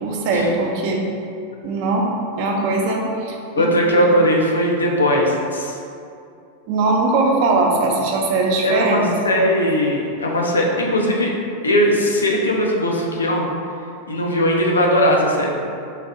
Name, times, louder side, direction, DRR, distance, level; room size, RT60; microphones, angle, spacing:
voice 1, 0.0-1.0 1.6-2.1 2.4-3.7 6.7-9.1, right 3 dB, 45° right, 0 dB, 0.4 m, -20 dB
voice 2, 3.5-5.8 8.6-11.3 11.6-13.5 14.1-15.5, equal, 75° left, 0 dB, 0.4 m, -19 dB
3.2 x 2.6 x 2.4 m, 2.4 s
figure-of-eight pair, 90°, 0 cm